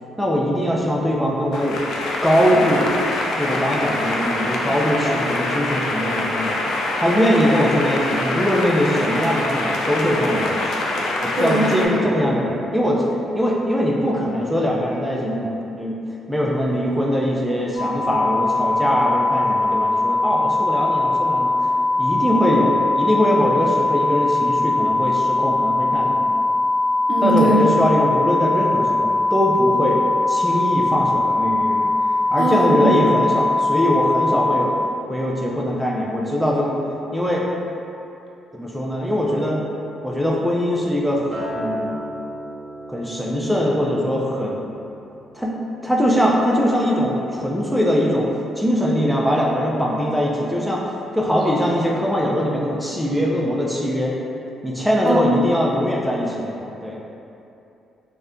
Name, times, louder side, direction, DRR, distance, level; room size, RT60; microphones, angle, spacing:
voice 1, 0.2-1.8 2.2-2.9 3.4-6.6 7.0-10.7 11.2-13.0 13.3-16.0 16.3-21.5 22.0-26.2 27.2-30.0 30.3-31.9 32.3-34.7 35.1-36.8 37.1-37.5 38.5-39.6 40.0-42.0 42.9-44.6 45.3-45.6 45.8-50.8 51.1-54.1 54.6-57.0, equal, ahead, -4 dB, 0.3 m, -21 dB
sound 1, 1.5-11.9, left 2 dB, 80° left, 0.3 m, -24 dB
voice 2, 11.4-12.1 27.1-27.6 32.4-32.9 55.1-55.4, right 2 dB, 55° right, -4 dB, 0.5 m, -20 dB
sound 2, 17.8-34.6, left 2 dB, 30° left, 1.2 m, -20 dB
Acoustic guitar, 41.3-45.7 46.1-46.5, equal, 30° right, 1.1 m, -35 dB
2.5 x 2.2 x 3.5 m, 2.8 s
cardioid pair, 90°, 0 cm